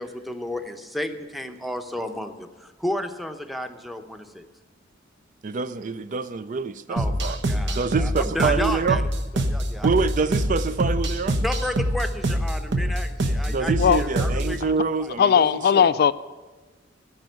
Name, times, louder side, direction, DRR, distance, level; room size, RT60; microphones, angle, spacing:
voice 1, 0.0-4.4 6.9-9.0 9.3-9.9 11.4-14.6 15.0-15.1, left 1 dB, ahead, 6 dB, 0.8 m, -32 dB
voice 2, 5.4-7.4 7.7-9.0 9.8-11.4 13.5-15.9, right 5 dB, 45° right, 13 dB, 0.4 m, -26 dB
sound 1, 7.0-14.6, right 1 dB, 65° right, 1.1 m, -25 dB
voice 3, 15.2-16.1, left 7 dB, 55° left, 15 dB, 0.3 m, -18 dB
15.5 x 5.3 x 9.2 m, 1.3 s
head